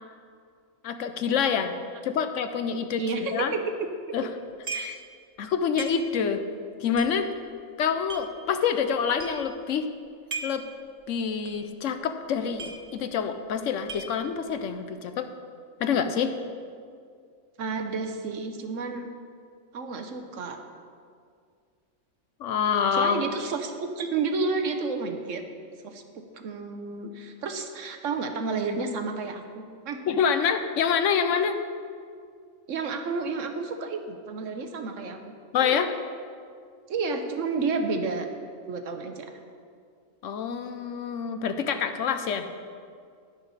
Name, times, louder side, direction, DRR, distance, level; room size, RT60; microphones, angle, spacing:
voice 1, 0.8-1.7 2.0-3.5 4.1-4.3 4.7-5.0 5.4-6.4 6.8-7.3 7.8-9.9 10.4-10.6 11.1-15.3 15.8-16.3 22.4-23.2 30.1-31.6 35.5-35.9 40.2-42.5, left 7 dB, 70° left, 9 dB, 1.0 m, -26 dB
voice 2, 3.0-3.6 4.9-5.0 17.6-19.1 19.7-20.6 22.9-25.4 25.8-26.0 26.3-30.0 32.7-35.2 35.6-35.8 36.9-38.3 38.7-39.4, right 4 dB, 70° right, 6 dB, 1.2 m, -31 dB
sound 1, 4.6-5.1 5.4-5.5 5.8-6.3 6.9-8.2 8.8-8.9 9.1-9.5 10.1-10.7 11.0-11.1 11.5-11.7 11.9-12.0 12.3-13.2 13.5-14.4, right 3 dB, 35° right, 0.8 m, -37 dB
10.5 x 10.0 x 4.1 m, 2.2 s
omnidirectional pair, 1.4 m